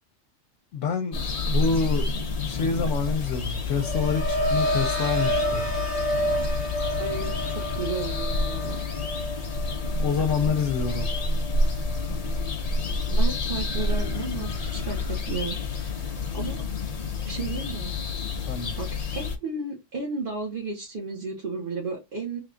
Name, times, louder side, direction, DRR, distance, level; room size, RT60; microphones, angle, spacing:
voice 1, 0.7-1.2 1.5-2.1 2.4-5.7 10.0-11.1 18.4-18.7, left 5 dB, 80° left, 1.0 m, -27 dB
sound 1, 1.1-19.4, left 3 dB, 45° left, 0.5 m, -29 dB
sound 2, 3.4-13.4 13.7-14.2, equal, 70° right, 1.7 m, -31 dB
voice 2, 7.0-8.8 13.0-16.6 17.2-17.9 18.8-22.4, right 4 dB, 45° right, 1.1 m, -34 dB
3.4 x 2.3 x 3.7 m
omnidirectional pair, 1.3 m